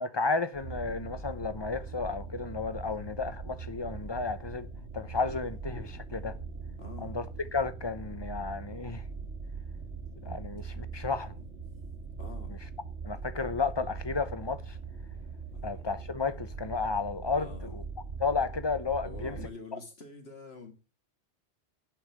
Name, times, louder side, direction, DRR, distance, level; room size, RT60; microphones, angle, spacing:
voice 1, 0.0-4.7 4.9-6.3 7.0-7.3 7.5-9.0 10.2-11.4 12.5-12.6 13.0-14.8 15.6-17.8 18.2-19.4 19.7-19.8, left 4 dB, 25° left, 0.9 m, -32 dB
sound 1, 0.5-19.5, right 4 dB, 85° right, 2.1 m, -41 dB
voice 2, 6.8-7.1 12.2-12.6 15.5-15.8 17.3-17.8 19.0-20.7, left 3 dB, 65° left, 2.4 m, -46 dB
10.0 x 5.5 x 8.1 m
omnidirectional pair, 1.1 m